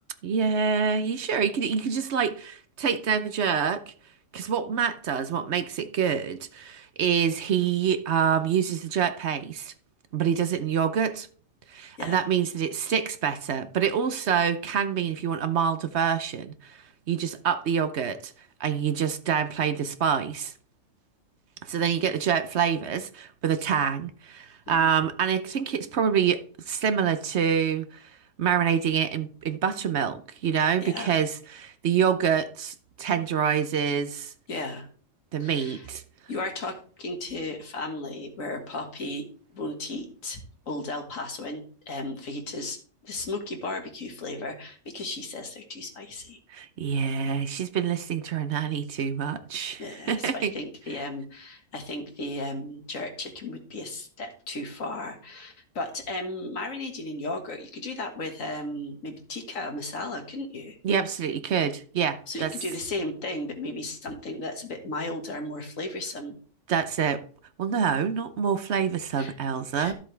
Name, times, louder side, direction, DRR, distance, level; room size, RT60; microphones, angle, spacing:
voice 1, 0.2-3.8 4.3-9.7 10.1-11.3 11.7-16.8 17.1-18.3 18.6-20.5 21.6-28.0 28.4-34.3 35.3-36.0 46.5-50.5 60.8-62.5 66.7-67.2 67.6-69.9, right 7 dB, 60° right, 1.0 m, -26 dB
voice 2, 30.8-31.1 34.5-34.9 35.4-35.9 36.3-39.3 39.5-46.4 49.8-60.8 62.3-66.4 69.2-69.3 69.8-69.9, left 2 dB, 80° left, 2.1 m, -35 dB
13.0 x 7.5 x 3.4 m
omnidirectional pair, 1.4 m